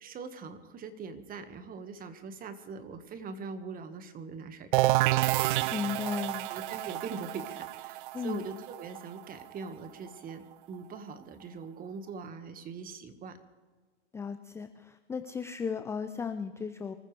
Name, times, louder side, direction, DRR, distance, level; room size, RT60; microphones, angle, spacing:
voice 1, 0.0-4.9 6.5-10.4 10.7-13.4, right 5 dB, 25° right, 9 dB, 1.5 m, -42 dB
sound 1, 4.7-10.3, right 17 dB, 50° right, 0.4 m, -29 dB
voice 2, 5.7-6.5 8.1-8.4 14.1-16.9, left 6 dB, 10° left, 9 dB, 0.4 m, -35 dB
25.0 x 14.5 x 3.3 m, 1.5 s
hypercardioid pair, 110°, 34 cm